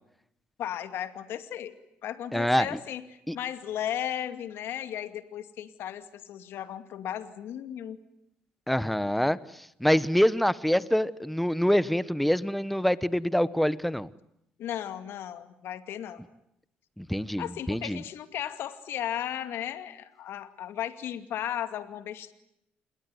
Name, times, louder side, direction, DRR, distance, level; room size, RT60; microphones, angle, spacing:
voice 1, 0.6-1.7 2.0-8.0 14.6-16.2 17.4-22.3, left 10 dB, 75° left, 10 dB, 2.3 m, -35 dB
voice 2, 2.3-2.7 3.3-3.4 8.7-14.1 17.0-18.0, equal, ahead, 17 dB, 1.1 m, -25 dB
28.0 x 21.5 x 9.7 m, 0.81 s
cardioid pair, 80°, 4 cm